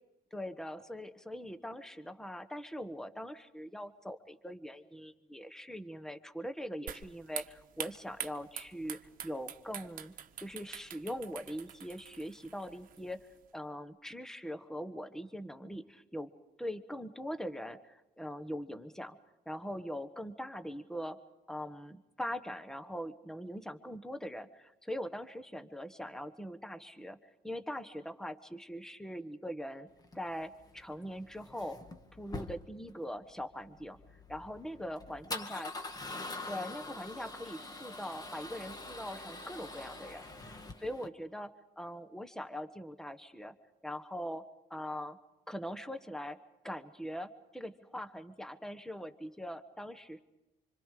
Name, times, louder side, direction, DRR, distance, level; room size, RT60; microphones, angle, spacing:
voice 1, 0.3-16.3 16.6-19.2 19.4-21.2 21.5-27.2 27.4-29.9 30.1-31.8 32.2-34.0 34.3-35.7 36.5-40.2 40.8-43.5 43.8-45.2 45.5-46.4 46.6-50.2, equal, 5° left, 10 dB, 1.2 m, -42 dB
sound 1, 6.9-13.4, right 9 dB, 55° right, 1.2 m, -46 dB
Male speech man speaking / Car / Engine starting, 30.0-41.1, left 2 dB, 20° left, 1.7 m, -45 dB
26.0 x 26.0 x 5.0 m, 0.95 s
cardioid pair, 110°, 17 cm